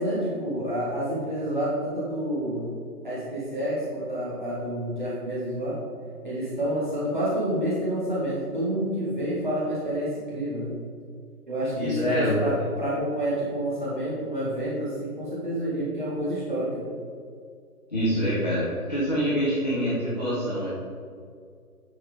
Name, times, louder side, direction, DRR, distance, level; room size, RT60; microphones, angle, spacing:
voice 1, 0.0-2.7 3.0-5.8 6.2-10.7 11.5-16.9, right 1 dB, 30° right, -9 dB, 1.6 m, -28 dB
voice 2, 11.8-12.4 17.9-20.7, equal, 25° left, -11 dB, 1.6 m, -25 dB
9.6 x 4.7 x 5.1 m, 2.2 s
figure-of-eight pair, 175°, 47 cm